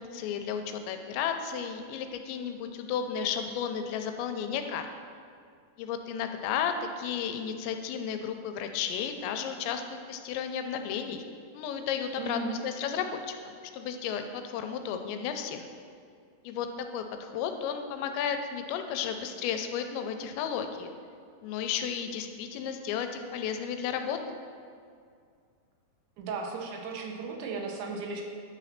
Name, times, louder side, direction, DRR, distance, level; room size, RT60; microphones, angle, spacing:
voice 1, 0.0-4.9 5.8-11.2 11.5-15.7 16.4-20.9 21.4-24.2, left 7 dB, 90° left, 6 dB, 2.9 m, -33 dB
voice 2, 12.2-12.6 26.2-28.2, right 3 dB, 85° right, 0 dB, 3.3 m, -35 dB
10.0 x 4.1 x 5.7 m, 2.2 s
omnidirectional pair, 5.1 m